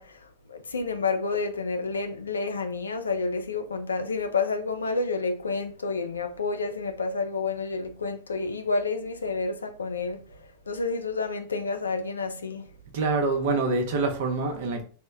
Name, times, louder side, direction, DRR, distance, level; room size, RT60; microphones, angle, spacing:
voice 1, 0.0-12.7, left 4 dB, 75° left, 0.3 m, -30 dB
voice 2, 12.9-14.8, right 3 dB, 50° right, 0.6 m, -25 dB
2.1 x 2.0 x 3.4 m
figure-of-eight pair, 90°, 0 cm